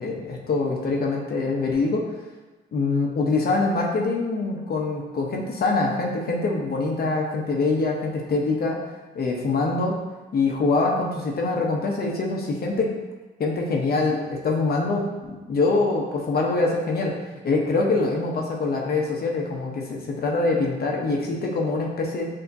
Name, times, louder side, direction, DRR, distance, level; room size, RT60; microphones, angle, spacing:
voice 1, 0.0-2.1 2.7-8.8 9.1-9.9 10.3-12.9 13.4-17.1 17.4-22.3, left 3 dB, 50° left, -1 dB, 0.9 m, -24 dB
6.9 x 2.9 x 2.6 m, 1.2 s
cardioid pair, 90°, 20 cm